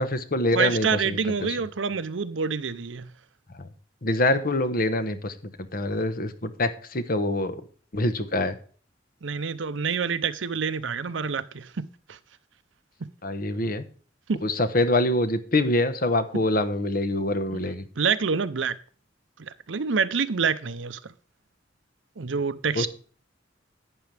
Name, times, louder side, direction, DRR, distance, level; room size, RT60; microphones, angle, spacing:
voice 1, 0.0-1.6 4.0-5.3 5.7-7.6 7.9-8.6 13.2-13.8 14.4-17.8 22.7-22.9, left 1 dB, 50° left, 1.1 m, -25 dB
voice 2, 0.5-3.1 9.2-12.2 14.3-14.4 17.5-18.8 19.4-21.1 22.2-22.9, right 5 dB, 80° right, 0.7 m, -27 dB
11.5 x 9.2 x 3.4 m
head